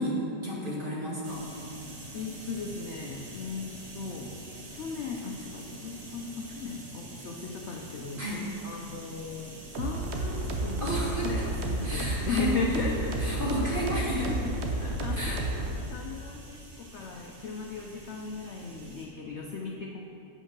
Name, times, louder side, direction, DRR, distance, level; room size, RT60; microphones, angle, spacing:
voice 1, 0.0-1.5 8.2-8.5 10.8-11.5 11.8-12.8 13.2-14.3 15.1-15.4, equal, 30° right, -5 dB, 1.6 m, -32 dB
sound 1, 1.2-19.1, right 1 dB, 80° right, 1.9 m, -46 dB
voice 2, 2.1-4.5 4.7-8.2 8.6-14.4 14.8-15.4 15.9-20.0, left 4 dB, 80° left, 1 dB, 0.6 m, -37 dB
sound 2, 9.7-15.7, right 2 dB, 55° right, 0.8 m, -31 dB
7.4 x 5.4 x 5.9 m, 2.7 s
omnidirectional pair, 1.8 m